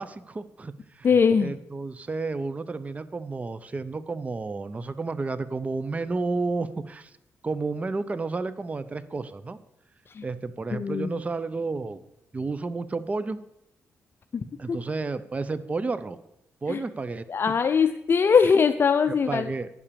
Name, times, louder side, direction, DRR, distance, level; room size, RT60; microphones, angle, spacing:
voice 1, 0.0-1.1 1.4-7.1 7.4-9.6 10.2-12.0 12.3-13.4 14.6-16.2 16.6-17.2 19.3-19.7, right 3 dB, 25° right, 14 dB, 0.5 m, -31 dB
voice 2, 1.0-1.5 10.1-10.3 10.7-11.2 14.3-14.8 16.7-16.8 17.3-19.5, left 6 dB, 45° left, 9 dB, 0.5 m, -22 dB
10.5 x 5.7 x 6.8 m, 0.83 s
cardioid pair, 85°, 5 cm